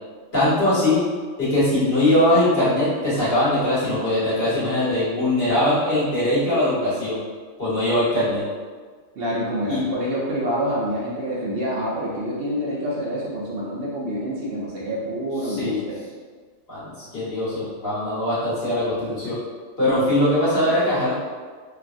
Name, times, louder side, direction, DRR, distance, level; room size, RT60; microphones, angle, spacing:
voice 1, 0.3-1.0 1.4-7.2 7.6-8.4 9.7-9.9 15.4-15.8 16.7-19.4 19.8-21.1, left 1 dB, 60° left, -11 dB, 1.5 m, -21 dB
voice 2, 9.2-16.0, equal, 60° right, -6 dB, 0.7 m, -27 dB
3.2 x 2.2 x 2.5 m, 1.5 s
omnidirectional pair, 1.2 m